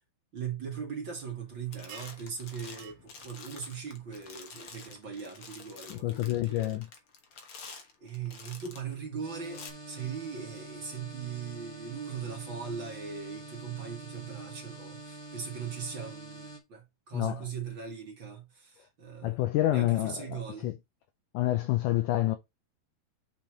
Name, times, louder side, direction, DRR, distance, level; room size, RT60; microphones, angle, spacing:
voice 1, 0.3-6.8 7.6-19.4 19.7-20.7, right 6 dB, 40° right, 2.0 m, -40 dB
sound 1, 1.2-1.4 1.7-8.9 9.4-9.7, left 5 dB, 60° left, 1.4 m, -49 dB
sound 2, 1.9-2.3 2.8-3.0 4.7-4.8, right 12 dB, 80° right, 2.4 m, -48 dB
voice 2, 5.9-6.9 17.1-17.5 19.2-20.7 21.3-22.4, left 15 dB, 80° left, 1.8 m, -28 dB
sound 3, 9.2-16.6, right 2 dB, 15° left, 0.8 m, -46 dB
7.4 x 5.5 x 3.1 m
omnidirectional pair, 4.4 m